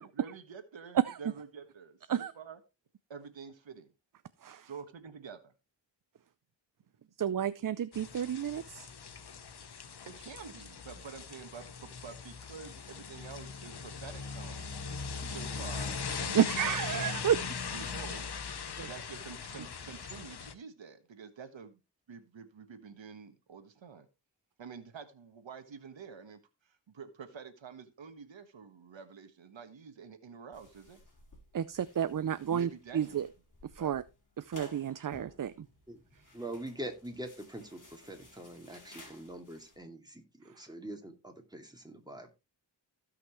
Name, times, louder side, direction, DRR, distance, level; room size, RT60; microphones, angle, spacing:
voice 1, 0.2-2.6 3.1-3.9 4.6-5.5 10.1-14.8 15.2-21.8 22.1-24.1 24.6-31.0 32.5-33.2 33.8-33.9, right 6 dB, 90° right, 1.4 m, -48 dB
voice 2, 7.2-8.9 16.3-17.4 17.6-17.9 18.8-18.9 31.5-33.3 33.7-34.0 34.4-35.7, right 9 dB, 50° right, 0.5 m, -31 dB
sound 1, 7.9-20.5, left 5 dB, 60° left, 1.1 m, -40 dB
sound 2, 14.9-18.6, equal, 20° left, 5.3 m, -55 dB
sound 3, 30.5-39.8, left 1 dB, 45° left, 4.4 m, -56 dB
voice 3, 36.3-42.3, right 1 dB, 10° right, 2.4 m, -44 dB
16.0 x 5.8 x 3.1 m
wide cardioid pair, 65°, 44 cm